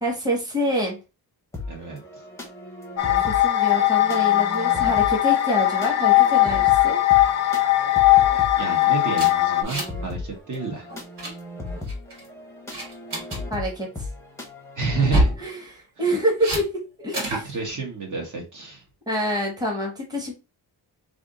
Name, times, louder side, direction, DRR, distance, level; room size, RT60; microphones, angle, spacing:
voice 1, 0.0-1.0 3.3-7.0 13.5-14.1 15.4-17.3 19.1-20.3, equal, 10° right, 0 dB, 1.1 m, -26 dB
sound 1, 1.5-15.2, left 2 dB, 5° left, 0.8 m, -36 dB
voice 2, 1.7-2.2 8.6-10.9 14.7-15.3 17.2-18.8, right 4 dB, 50° right, 1 dB, 1.2 m, -30 dB
sound 2, 3.0-9.6, left 15 dB, 40° left, 0.5 m, -19 dB
sound 3, 9.1-10.1 10.3-10.5 10.9-11.3 11.9-12.2 12.7-13.4 14.9-15.4 16.4-16.6 17.1-17.5, equal, 80° right, 2.0 m, -26 dB
3.4 x 2.6 x 3.7 m, 0.29 s
wide cardioid pair, 165°, 40 cm